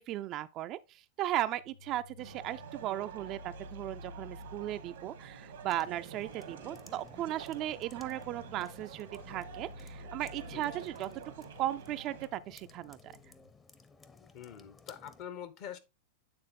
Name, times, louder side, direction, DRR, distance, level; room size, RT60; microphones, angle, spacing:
voice 1, 0.0-11.1 11.6-13.1, right 13 dB, 40° right, 0.4 m, -37 dB
sound 1, 1.5-13.5, left 3 dB, 90° left, 0.4 m, -53 dB
sound 2, 2.2-12.3, right 9 dB, 75° right, 1.1 m, -49 dB
sound 3, 5.7-15.3, left 4 dB, 20° left, 0.7 m, -57 dB
voice 2, 10.5-10.9 14.3-15.8, left 9 dB, 50° left, 0.9 m, -45 dB
8.7 x 3.6 x 3.5 m
hypercardioid pair, 105°, 0 cm